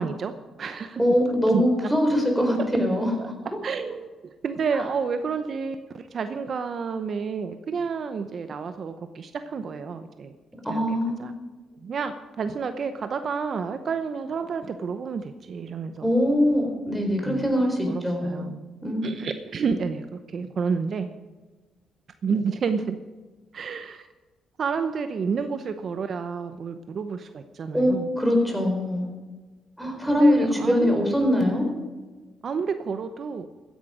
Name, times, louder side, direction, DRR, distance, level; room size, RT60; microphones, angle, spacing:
voice 1, 0.0-1.0 1.5-1.6 3.2-3.3 3.6-4.1 4.4-10.4 10.7-11.3 11.8-16.1 17.3-17.4 17.8-18.6 19.0-21.1 22.2-23.0 23.5-24.1 24.6-28.1 30.1-31.1 32.4-33.5, right 5 dB, 55° right, 9 dB, 0.8 m, -30 dB
voice 2, 1.0-3.3 4.7-4.8 10.6-11.3 16.0-18.4 18.8-19.1 27.7-29.1 29.8-31.7, equal, ahead, 2 dB, 4.3 m, -22 dB
15.0 x 10.5 x 5.1 m, 1.3 s
cardioid pair, 90°, 0 cm